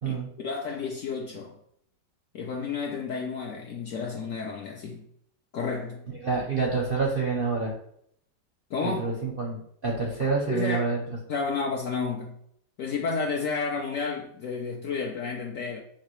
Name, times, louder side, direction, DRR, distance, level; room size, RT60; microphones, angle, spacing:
voice 1, 0.4-1.5 2.3-5.0 5.5-6.0 8.7-9.0 10.5-10.8 11.3-12.3 12.8-15.8, left 4 dB, 65° left, 0.8 m, -31 dB
voice 2, 6.2-7.7 8.8-11.0, right 4 dB, 60° right, 0.5 m, -27 dB
5.7 x 2.8 x 3.0 m
omnidirectional pair, 1.9 m